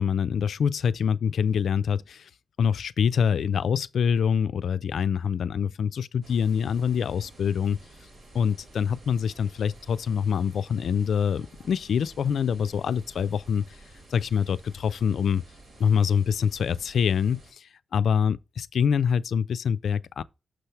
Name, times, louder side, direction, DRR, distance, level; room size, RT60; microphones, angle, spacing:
voice 1, 0.0-2.3 2.6-7.8 8.3-13.6 14.1-15.4 15.8-20.2, left 7 dB, 85° left, 0.3 m, -25 dB
sound 1, 6.2-17.5, right 1 dB, 60° right, 1.5 m, -51 dB
6.2 x 3.2 x 5.7 m
wide cardioid pair, 165°, 0 cm